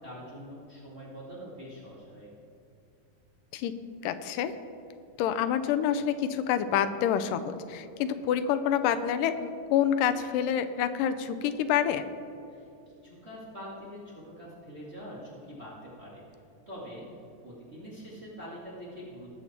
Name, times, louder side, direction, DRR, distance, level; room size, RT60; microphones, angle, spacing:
voice 1, 0.0-2.3 12.5-12.7 13.0-16.2 16.7-17.1 17.4-19.3, equal, 25° right, -7 dB, 1.8 m, -44 dB
voice 2, 4.0-4.5 5.2-12.0, left 9 dB, 80° left, 10 dB, 2.2 m, -27 dB
19.0 x 6.6 x 4.3 m, 2.6 s
omnidirectional pair, 3.9 m